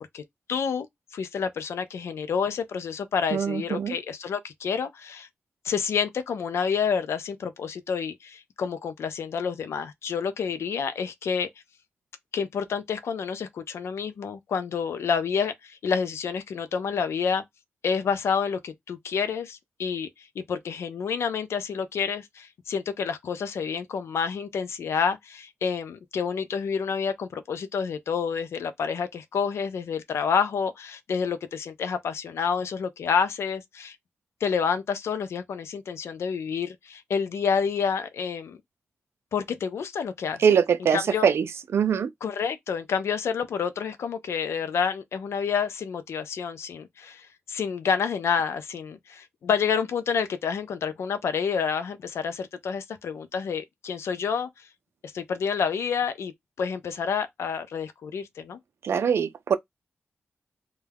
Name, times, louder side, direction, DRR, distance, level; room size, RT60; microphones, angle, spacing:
voice 1, 0.5-0.9 1.1-5.3 5.6-11.5 12.3-17.4 17.8-20.1 20.4-34.0 34.4-38.6 39.3-40.4 40.9-41.3 42.2-54.5 55.1-56.3 56.6-58.6, left 6 dB, 85° left, 0.4 m, -28 dB
voice 2, 3.3-3.9 40.4-41.5 41.7-42.1 58.8-59.6, right 7 dB, 75° right, 0.4 m, -22 dB
2.2 x 2.2 x 3.2 m
wide cardioid pair, 120°, 4 cm